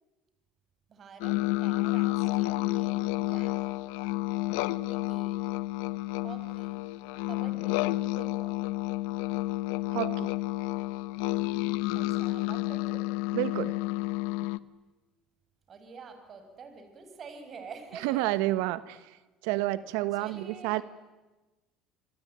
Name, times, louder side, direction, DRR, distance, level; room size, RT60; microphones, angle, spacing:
voice 1, 0.9-3.8 4.9-5.4 6.2-6.8 7.3-8.7 11.9-13.2 15.7-18.4 20.1-20.8, right 5 dB, 40° right, 8 dB, 5.5 m, -48 dB
sound 1, 1.2-14.6, left 19 dB, 85° left, 0.8 m, -30 dB
voice 2, 9.9-10.3 13.3-13.8 18.0-18.8 19.4-20.8, right 17 dB, 85° right, 16 dB, 1.2 m, -29 dB
27.5 x 23.0 x 8.9 m, 1.2 s
supercardioid pair, 110°, 0 cm